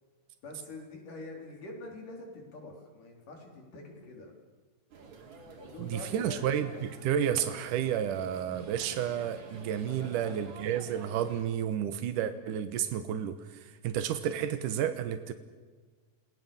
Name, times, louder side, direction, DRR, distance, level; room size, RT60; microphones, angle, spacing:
voice 1, 0.4-4.3 5.4-6.4 9.9-10.4, left 2 dB, 80° left, 1 dB, 6.0 m, -45 dB
sound 1, 4.9-11.5, right 4 dB, 65° right, 4.2 m, -49 dB
voice 2, 5.8-15.3, right 9 dB, 85° right, 9 dB, 2.7 m, -31 dB
29.5 x 20.0 x 7.3 m, 1.4 s
omnidirectional pair, 3.6 m